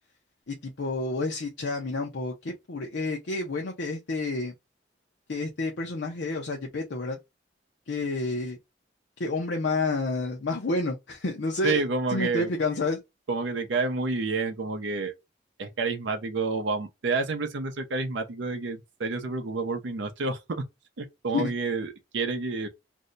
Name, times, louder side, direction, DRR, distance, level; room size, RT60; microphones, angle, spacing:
voice 1, 0.5-4.5 5.3-7.2 7.9-8.6 9.2-11.8 12.1-13.0 21.3-21.5, left 3 dB, 75° left, 0.6 m, -29 dB
voice 2, 11.6-12.5 13.3-15.1 15.6-20.6 21.0-22.7, right 3 dB, 80° right, 0.6 m, -29 dB
2.6 x 2.2 x 3.8 m
head